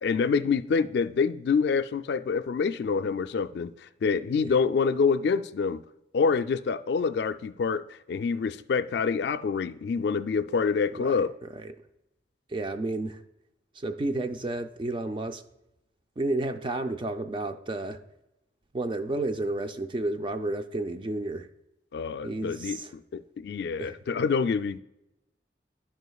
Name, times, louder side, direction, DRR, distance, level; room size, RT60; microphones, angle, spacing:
voice 1, 0.0-5.8 6.1-11.3 21.9-22.8 23.1-24.8, left 5 dB, 60° left, 0.3 m, -26 dB
voice 2, 11.4-11.7 12.5-13.2 13.8-15.4 16.2-18.0 18.7-21.5 22.2-22.9 23.8-23.9, right 2 dB, 25° right, 0.4 m, -31 dB
11.0 x 5.6 x 2.3 m
head